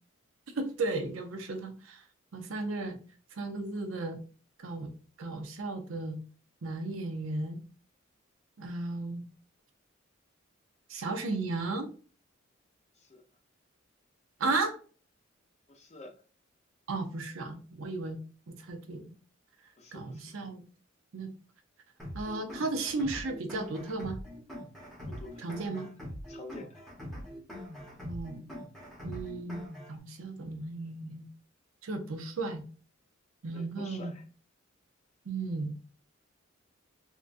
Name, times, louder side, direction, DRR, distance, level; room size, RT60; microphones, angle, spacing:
voice 1, 0.6-2.0 2.3-3.0 3.4-4.2 4.6-4.9 5.2-6.2 6.6-7.6 8.6-9.2 10.9-11.9 14.4-14.8 16.9-18.2 18.5-19.1 19.9-20.6 21.1-21.3 22.1-24.2 25.4-25.9 28.0-28.5 29.0-29.6 29.9-31.2 31.8-32.6 33.4-34.1 35.3-35.7, right 3 dB, 85° right, 0.6 m, -34 dB
voice 2, 15.7-16.1 19.8-20.2 25.1-25.5 26.3-26.8 33.5-34.2, left 2 dB, 35° left, 0.5 m, -47 dB
sound 1, 22.0-30.0, left 1 dB, ahead, 1.0 m, -43 dB
3.6 x 2.2 x 2.5 m
head